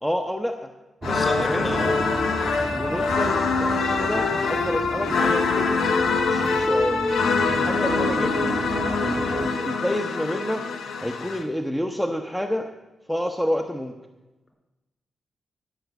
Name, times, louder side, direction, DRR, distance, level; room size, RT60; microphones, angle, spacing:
voice 1, 0.0-0.7 1.4-1.7 2.7-5.8 6.2-7.0 7.5-8.5 9.0-10.6 11.0-12.7 13.1-13.9, equal, 5° left, 3 dB, 0.9 m, -29 dB
sound 1, 1.0-11.4, left 4 dB, 85° left, 1.0 m, -24 dB
voice 2, 1.0-1.9 7.4-7.6, left 1 dB, 35° left, 1 dB, 4.4 m, -31 dB
sound 2, 1.0-9.5, right 3 dB, 30° right, 0.8 m, -32 dB
15.5 x 5.9 x 8.1 m, 1.1 s
cardioid pair, 80°, 0 cm